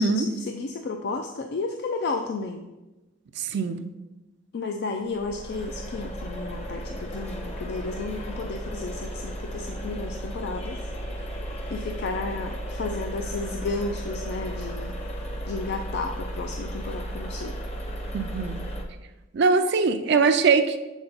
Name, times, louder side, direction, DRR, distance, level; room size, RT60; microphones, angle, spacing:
voice 1, 0.0-2.7 4.5-10.8 11.7-15.0 15.5-17.6, left 3 dB, 55° left, 5 dB, 0.4 m, -32 dB
voice 2, 3.4-3.9 18.1-18.6 19.3-20.8, right 4 dB, 60° right, 7 dB, 0.4 m, -22 dB
sound 1, 5.1-18.8, equal, 35° left, 0.8 m, -34 dB
7.1 x 4.3 x 3.9 m, 1.1 s
head